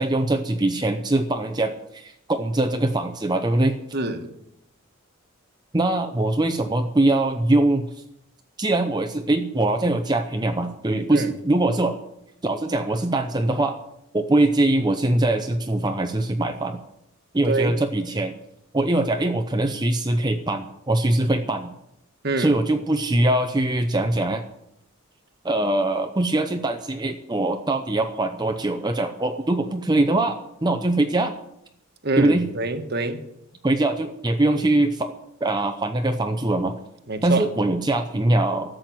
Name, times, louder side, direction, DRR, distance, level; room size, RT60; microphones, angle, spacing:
voice 1, 0.0-3.7 5.7-7.9 8.6-12.0 12.4-13.8 14.1-16.8 17.3-18.3 18.7-21.7 22.4-24.4 25.4-31.3 32.2-32.5 33.6-35.1 35.4-36.7 37.2-38.8, right 2 dB, 20° right, 0.7 m, -22 dB
voice 2, 3.9-4.3 11.1-11.3 17.5-17.7 22.2-22.5 32.0-33.2 37.1-37.4, right 2 dB, 50° right, 1.4 m, -25 dB
13.5 x 7.8 x 9.2 m
head